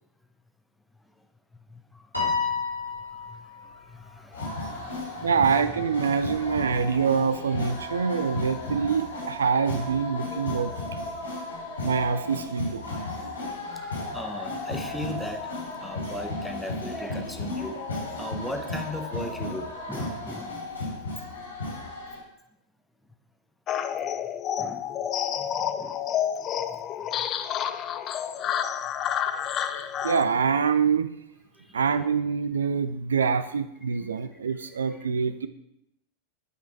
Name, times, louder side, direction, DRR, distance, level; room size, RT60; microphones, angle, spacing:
Piano, 2.1-3.7, left 5 dB, 90° left, 2.6 m, -29 dB
voice 1, 3.9-5.7 6.1-6.2 10.2-10.9 12.8-13.1 13.4-15.5 15.8-17.8 18.1-20.5 24.6-25.0 25.4-26.0 31.7-31.8 34.0-34.1 34.6-35.0, left 1 dB, 5° left, 5 dB, 1.0 m, -39 dB
sound 1, 4.3-22.2, left 2 dB, 70° left, 3.1 m, -35 dB
voice 2, 5.2-10.7 11.8-12.8 13.2-13.3 30.0-31.1 31.7-35.5, right 6 dB, 70° right, 11 dB, 0.5 m, -25 dB
sound 2, 23.7-30.3, left 9 dB, 30° left, 0.5 m, -29 dB
9.9 x 5.4 x 4.6 m, 0.80 s
figure-of-eight pair, 90°, 0 cm